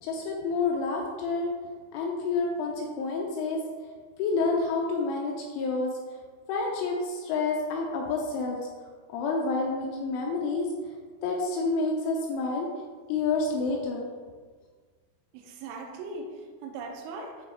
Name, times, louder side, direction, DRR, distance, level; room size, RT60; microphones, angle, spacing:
voice 1, 0.0-1.5 1.9-3.6 4.2-5.9 6.5-8.6 9.1-10.7 11.2-12.7 13.1-14.1, left 3 dB, 80° left, 0 dB, 2.9 m, -28 dB
voice 2, 15.3-17.5, right 3 dB, 80° right, 1 dB, 3.1 m, -39 dB
9.1 x 3.2 x 4.3 m, 1.5 s
omnidirectional pair, 6.0 m